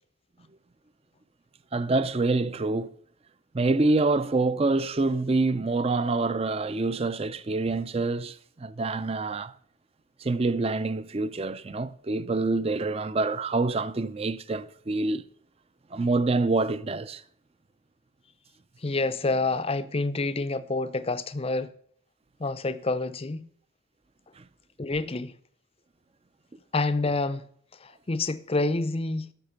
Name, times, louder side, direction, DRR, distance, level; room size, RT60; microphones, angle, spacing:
voice 1, 1.7-2.9 3.5-9.5 10.2-15.2 15.9-17.2 24.4-24.5, right 3 dB, 25° right, 0.4 m, -26 dB
voice 2, 18.8-21.7 22.4-23.5 24.8-25.3 26.7-27.5 27.8-29.3, left 3 dB, 25° left, 0.5 m, -28 dB
10.5 x 6.6 x 6.6 m
head